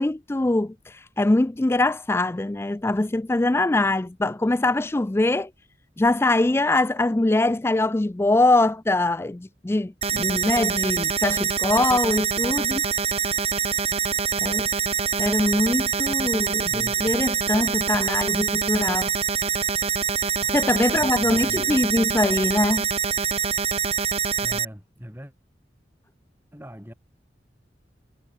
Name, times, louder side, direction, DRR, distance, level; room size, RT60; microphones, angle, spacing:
voice 1, 0.0-5.5 6.0-12.8 14.4-14.7 15.2-19.1 20.5-22.9, left 2 dB, 15° left, 0.4 m, -23 dB
sound 1, 10.0-24.7, right 7 dB, 35° right, 1.3 m, -25 dB
voice 2, 16.5-17.0 20.9-21.8 24.4-25.3 26.5-26.9, equal, 10° right, 4.6 m, -41 dB
head